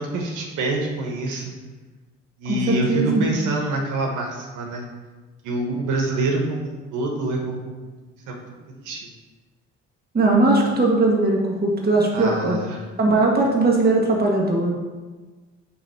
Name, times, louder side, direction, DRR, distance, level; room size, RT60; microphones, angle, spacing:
voice 1, 0.0-1.5 2.4-4.9 5.4-7.7 8.3-9.0 12.1-12.8, right 2 dB, 90° right, 0 dB, 1.2 m, -26 dB
voice 2, 2.5-3.3 10.1-12.6 13.0-14.7, right 2 dB, 30° right, -2 dB, 1.9 m, -19 dB
8.6 x 3.2 x 5.6 m, 1.3 s
cardioid pair, 90°, 30 cm